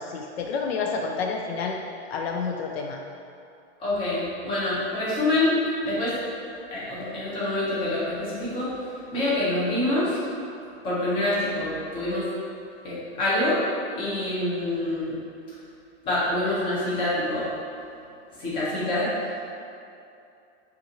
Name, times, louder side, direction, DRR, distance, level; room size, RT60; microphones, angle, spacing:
voice 1, 0.0-1.8 2.1-3.0, left 5 dB, 70° left, 1 dB, 0.4 m, -29 dB
voice 2, 3.8-5.5 5.8-6.1 6.7-10.2 10.8-12.3 12.8-13.6 14.0-15.2 16.0-17.5 18.4-19.1, left 1 dB, 15° left, -9 dB, 0.8 m, -26 dB
5.4 x 2.5 x 2.9 m, 2.6 s
supercardioid pair, 175°, 32 cm